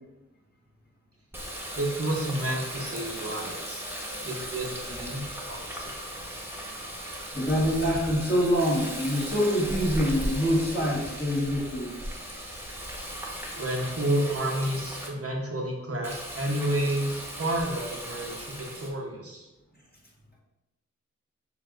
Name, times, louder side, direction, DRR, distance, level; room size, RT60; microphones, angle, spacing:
Water tap faucet, 1.3-15.1 16.0-18.9, equal, 10° right, 1.2 m, -37 dB
voice 1, 1.7-3.9 4.2-5.9 13.6-19.5, right 1 dB, 50° right, -1 dB, 1.0 m, -30 dB
voice 2, 7.3-11.9, equal, 35° left, -5 dB, 1.5 m, -25 dB
6.7 x 2.8 x 2.5 m, 0.99 s
cardioid pair, 40°, 29 cm